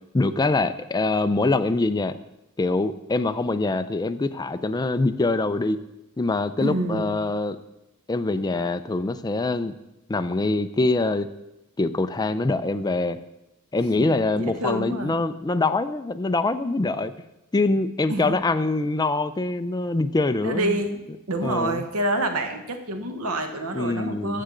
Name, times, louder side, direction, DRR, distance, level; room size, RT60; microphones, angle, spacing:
voice 1, 0.1-2.1 2.6-5.8 6.2-7.6 8.1-9.7 10.1-11.3 11.8-13.2 13.7-17.1 17.5-20.8 21.4-21.8 23.7-24.4, left 2 dB, 20° left, 10 dB, 0.4 m, -24 dB
voice 2, 6.6-7.2 14.3-15.1 18.1-18.4 20.4-21.0 21.3-24.4, right 1 dB, 70° right, 6 dB, 1.1 m, -27 dB
13.0 x 7.2 x 3.8 m, 0.94 s
head